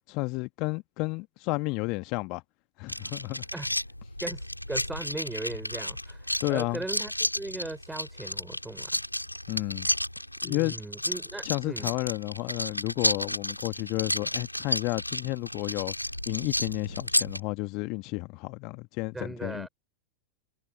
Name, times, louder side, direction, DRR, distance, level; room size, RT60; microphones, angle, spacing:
voice 1, 0.1-2.4 2.8-3.5 6.4-6.8 9.5-9.9 10.4-10.7 11.4-15.9 16.3-19.7, left 27 dB, 40° left, 1.7 m, -31 dB
sound 1, 2.9-17.4, left 1 dB, 90° left, 5.8 m, -32 dB
voice 2, 4.2-8.9 10.4-11.9 19.1-19.7, right 2 dB, 5° right, 5.3 m, -38 dB
figure-of-eight pair, 90°, 0 cm